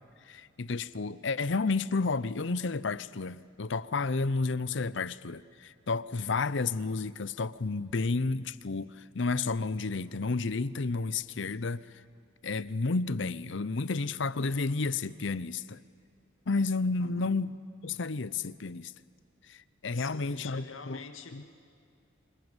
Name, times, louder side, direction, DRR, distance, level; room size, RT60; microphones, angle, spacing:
voice 1, 0.3-11.9 12.4-15.8 16.5-17.6 17.8-18.9 19.5-21.0 21.3-21.4, left 3 dB, 65° left, 0.7 m, -31 dB
voice 2, 17.0-17.4 19.9-21.4, left 4 dB, 80° left, 2.3 m, -46 dB
28.0 x 26.5 x 8.1 m
head